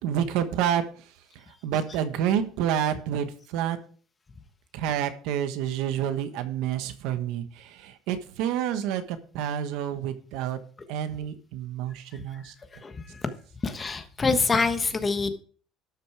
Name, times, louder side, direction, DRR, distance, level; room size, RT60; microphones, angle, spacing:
voice 1, 0.0-3.8 4.7-10.6 10.9-12.5, right 9 dB, 75° right, 10 dB, 1.3 m, -29 dB
voice 2, 12.8-13.2 13.6-15.3, left 4 dB, 20° left, 8 dB, 1.3 m, -26 dB
12.5 x 6.6 x 4.8 m, 0.43 s
cardioid pair, 140°, 0 cm